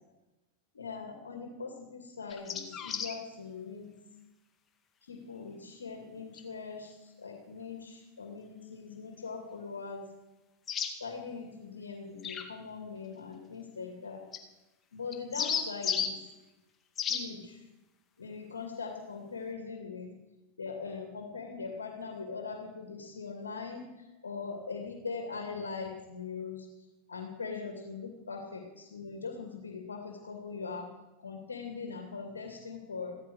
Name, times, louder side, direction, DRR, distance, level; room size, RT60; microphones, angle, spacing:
voice 1, 0.7-4.0 5.0-10.1 10.9-14.3 14.9-16.2 17.0-17.7 18.2-20.1 20.6-26.7 27.1-30.9 31.2-33.2, left 5 dB, 90° left, 4 dB, 2.5 m, -41 dB
sound 1, 2.3-3.2 6.3-6.4 10.7-10.9 12.2-12.5 14.3-14.4 15.1-16.1 17.0-17.2, left 7 dB, 30° left, 2.1 m, -33 dB
15.5 x 13.5 x 6.4 m, 1.0 s
hypercardioid pair, 95°, 0 cm